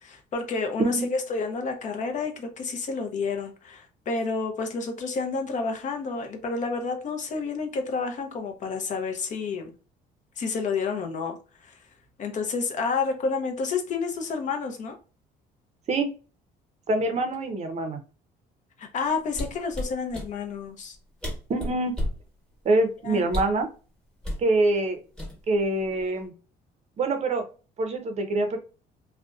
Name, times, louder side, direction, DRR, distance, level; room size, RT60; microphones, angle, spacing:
voice 1, 0.0-9.7 10.4-11.4 11.6-11.8 12.2-15.0 18.8-21.0 23.0-23.2, left 4 dB, 45° left, 0.6 m, -30 dB
voice 2, 0.8-1.1 15.9-16.1 16.9-18.0 21.5-22.0 22.6-23.7 24.4-25.0 25.5-26.3 27.0-27.5 27.8-28.6, right 2 dB, 40° right, 0.5 m, -25 dB
sound 1, 19.3-20.3 20.9-21.0 21.2-22.2 23.3-23.6 24.2-24.5 25.2-25.6 26.0-26.3, equal, 5° left, 1.1 m, -31 dB
2.5 x 2.1 x 2.3 m
cardioid pair, 110°, 17 cm